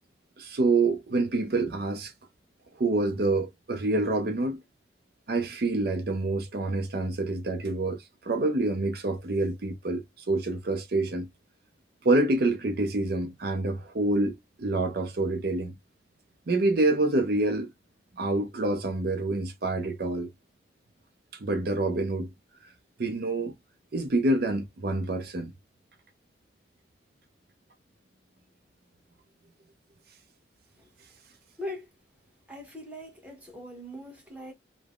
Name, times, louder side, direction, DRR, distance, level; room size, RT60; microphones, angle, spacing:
voice 1, 0.4-2.1 2.8-4.6 5.3-11.3 12.0-15.7 16.5-17.7 18.2-20.3 21.3-22.3 23.0-23.5 23.9-25.5, right 2 dB, 50° right, 0.5 m, -27 dB
voice 2, 31.6-31.9 32.5-34.5, left 1 dB, 10° right, 0.8 m, -40 dB
3.2 x 2.0 x 2.3 m
head